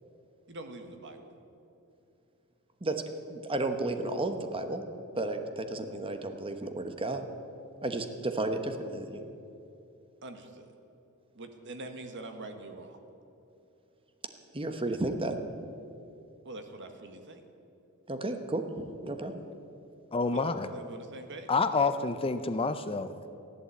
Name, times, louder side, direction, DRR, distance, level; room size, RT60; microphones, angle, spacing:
voice 1, 0.5-1.3 10.2-10.7 11.3-13.0 16.4-17.4 20.3-21.5, right 2 dB, 55° right, 6 dB, 1.5 m, -44 dB
voice 2, 2.8-4.8 5.2-7.3 7.8-9.2 14.5-15.7 18.1-19.4, right 2 dB, 25° right, 7 dB, 1.1 m, -33 dB
voice 3, 20.1-20.7 21.5-23.4, left 4 dB, 25° left, 11 dB, 0.5 m, -28 dB
15.0 x 11.5 x 8.3 m, 2.7 s
head